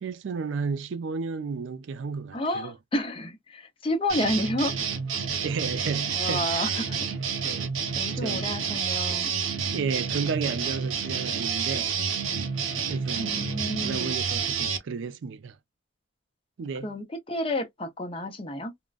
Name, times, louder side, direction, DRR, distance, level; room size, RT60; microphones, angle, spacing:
voice 1, 0.0-2.7 5.4-6.8 7.4-7.7 8.2-8.5 9.7-12.0 12.9-13.5 13.8-15.6 16.6-16.9, right 5 dB, 70° right, 0.4 m, -32 dB
voice 2, 2.3-4.7 6.1-7.0 8.0-9.3 13.2-14.1 16.8-18.7, left 1 dB, 25° left, 0.6 m, -30 dB
sound 1, 4.1-14.8, right 6 dB, 90° right, 0.8 m, -29 dB
3.7 x 2.1 x 2.3 m
head